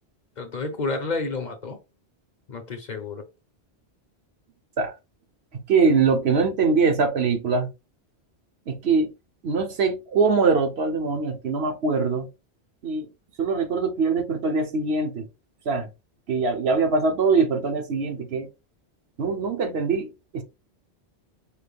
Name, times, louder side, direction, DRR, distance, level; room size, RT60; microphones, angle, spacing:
voice 1, 0.4-1.8 2.5-3.2, left 3 dB, 50° left, 0.8 m, -30 dB
voice 2, 5.5-7.7 8.7-9.1 9.4-12.3 12.8-13.1 13.4-15.3 15.7-15.9 16.3-18.5 19.2-20.4, right 4 dB, 70° right, 1.1 m, -23 dB
4.8 x 3.4 x 2.3 m
omnidirectional pair, 1.1 m